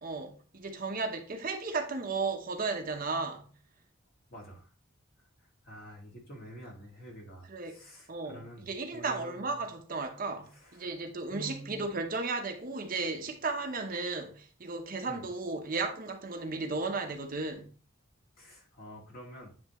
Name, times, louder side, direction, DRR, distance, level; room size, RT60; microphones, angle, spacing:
voice 1, 0.0-3.5 7.5-7.8 8.1-8.4 8.7-17.7, right 3 dB, 45° right, 0.8 m, -34 dB
voice 2, 4.3-4.7 5.2-5.3 5.6-9.6 10.5-10.9 11.3-11.9 15.1-15.2 18.4-19.5, right 1 dB, 50° left, 2.0 m, -48 dB
9.7 x 3.3 x 2.9 m
head